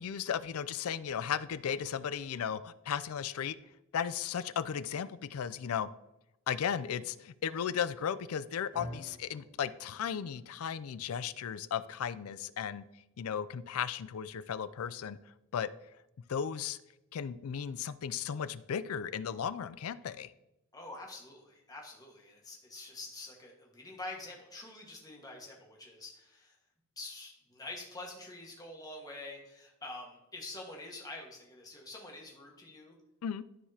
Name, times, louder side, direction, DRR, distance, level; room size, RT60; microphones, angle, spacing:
voice 1, 0.0-3.6 3.9-5.9 6.5-12.8 13.2-15.2 15.5-15.7 16.3-16.8 17.1-20.3 33.2-33.4, left 8 dB, 80° left, 15 dB, 0.4 m, -35 dB
sound 1, 8.7-17.0, equal, 40° right, 2.0 m, -53 dB
voice 2, 20.7-26.5 27.0-32.9, left 2 dB, 15° left, -1 dB, 1.5 m, -46 dB
13.0 x 4.8 x 2.8 m, 0.92 s
head